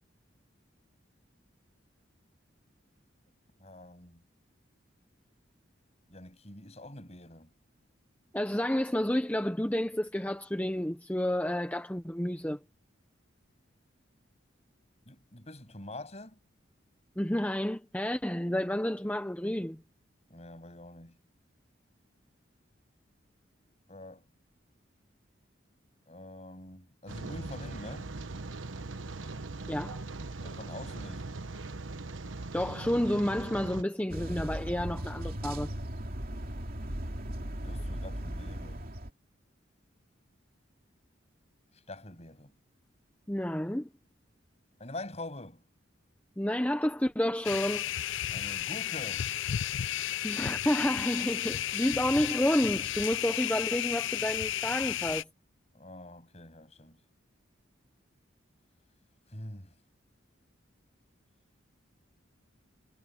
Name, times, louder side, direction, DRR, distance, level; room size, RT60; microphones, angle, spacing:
voice 1, 3.6-4.2 6.1-7.5 15.1-16.4 20.3-21.2 23.9-24.3 26.1-28.1 30.4-31.3 37.4-38.9 41.7-42.5 44.8-45.6 48.3-49.3 55.7-57.0 59.3-59.7, left 1 dB, 35° left, 7.5 m, -45 dB
voice 2, 8.3-12.6 17.2-19.8 29.7-30.0 32.5-35.7 43.3-43.9 46.4-47.9 50.2-55.3, left 1 dB, 10° left, 0.8 m, -30 dB
Rain, 27.1-33.8, right 3 dB, 90° right, 1.2 m, -40 dB
sound 1, 34.1-39.1, equal, 50° right, 2.8 m, -37 dB
sound 2, 47.4-55.2, left 12 dB, 75° left, 0.4 m, -33 dB
head